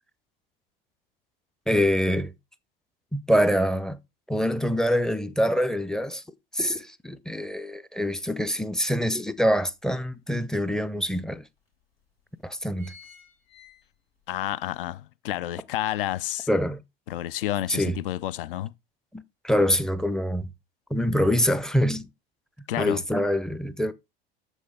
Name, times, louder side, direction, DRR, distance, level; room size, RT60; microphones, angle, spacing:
voice 1, 1.7-2.3 3.1-4.0 4.3-6.2 6.5-11.4 12.4-12.9 16.5-16.8 17.7-18.0 19.1-20.5 20.9-22.1 22.8-23.9, equal, ahead, 0.5 m, -25 dB
sound 1, 8.5-8.6 9.1-10.2 10.9-11.0 11.2-11.3 12.0-12.2 12.5-14.3 14.7-14.8, left 4 dB, 90° left, 2.2 m, -52 dB
voice 2, 14.3-16.5 17.1-18.7 22.7-23.0, left 13 dB, 65° left, 0.5 m, -30 dB
7.2 x 6.3 x 3.3 m
figure-of-eight pair, 75°, 29 cm